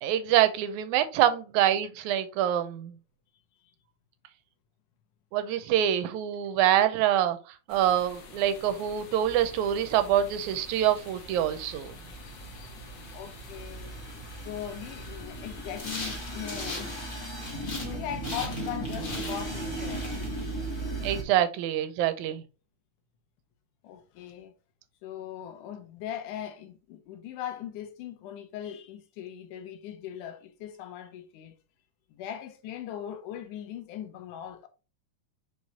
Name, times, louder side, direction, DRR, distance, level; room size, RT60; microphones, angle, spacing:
voice 1, 0.0-3.0 5.3-7.4 7.7-11.9 21.0-22.4, right 11 dB, 80° right, 2.0 m, -25 dB
sound 1, 7.7-17.0, left 4 dB, 60° left, 1.1 m, -49 dB
sound 2, 9.2-21.2, right 2 dB, 10° left, 1.4 m, -38 dB
voice 2, 12.4-12.7 13.1-13.9 14.4-17.1 17.4-20.7 23.8-24.5 25.0-31.6 32.1-34.7, left 10 dB, 90° left, 2.4 m, -40 dB
sound 3, 15.8-17.9 18.2-20.8, left 2 dB, 35° left, 2.1 m, -40 dB
5.2 x 4.8 x 4.0 m
omnidirectional pair, 3.5 m